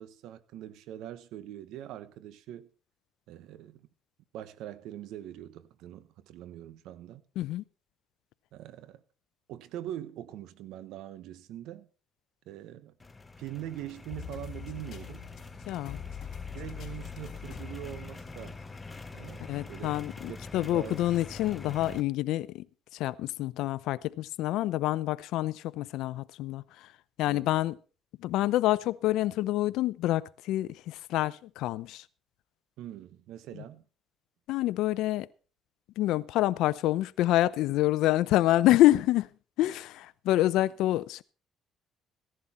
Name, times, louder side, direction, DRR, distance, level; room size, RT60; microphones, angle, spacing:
voice 1, 0.0-2.7 3.3-3.9 4.3-7.2 8.5-9.0 9.5-11.9 12.5-12.9 13.4-15.3 16.5-18.6 19.1-19.9 20.3-20.4 20.7-21.1 27.2-27.5 32.8-33.8, right 12 dB, 80° right, 1.0 m, -43 dB
sound 1, 13.0-22.0, left 3 dB, 20° left, 1.0 m, -45 dB
sound 2, 14.1-18.8 19.3-19.4 20.3-20.4, left 7 dB, 60° left, 3.5 m, -43 dB
voice 2, 15.7-16.0 19.5-22.7 22.9-26.9 27.2-27.8 28.2-32.0 33.5-33.6 34.5-35.3 36.0-39.3 39.6-41.2, left 15 dB, 80° left, 0.6 m, -27 dB
15.5 x 11.0 x 4.3 m
cardioid pair, 90°, 0 cm